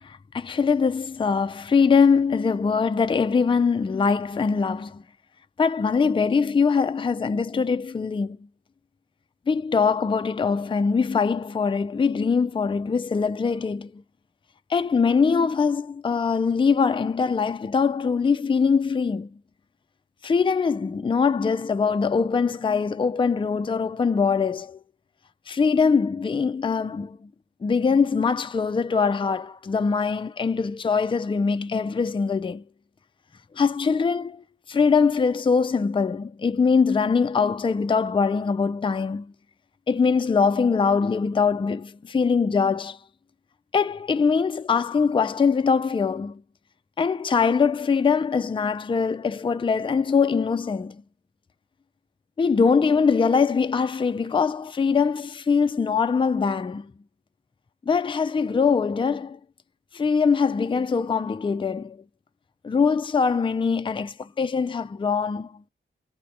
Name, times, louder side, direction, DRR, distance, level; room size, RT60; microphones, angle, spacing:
voice 1, 0.0-5.0 5.6-8.4 9.5-14.0 14.7-19.3 20.2-24.8 25.5-27.3 27.6-32.6 33.5-39.3 39.9-43.0 43.7-46.4 47.0-51.0 52.4-56.9 57.9-59.4 59.9-62.0 62.6-65.6, left 5 dB, 25° left, 0.4 m, -22 dB
4.3 x 2.7 x 3.2 m
cardioid pair, 65°, 21 cm